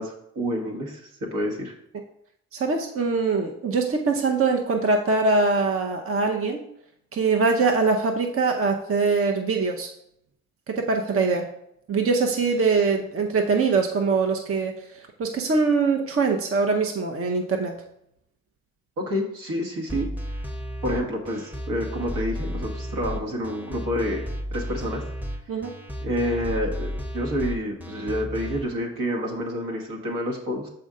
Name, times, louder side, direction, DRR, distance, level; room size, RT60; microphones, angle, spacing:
voice 1, 0.0-1.7 19.1-20.1 20.8-24.2 24.5-25.0 26.0-30.7, equal, 70° right, 0 dB, 1.4 m, -28 dB
voice 2, 2.5-6.6 7.1-9.9 10.7-11.5 11.9-17.7 25.5-25.7, right 4 dB, 40° right, 2 dB, 0.8 m, -23 dB
sound 1, 19.9-28.6, equal, 5° right, 0.9 m, -33 dB
6.2 x 4.4 x 3.7 m, 0.78 s
hypercardioid pair, 40°, 33 cm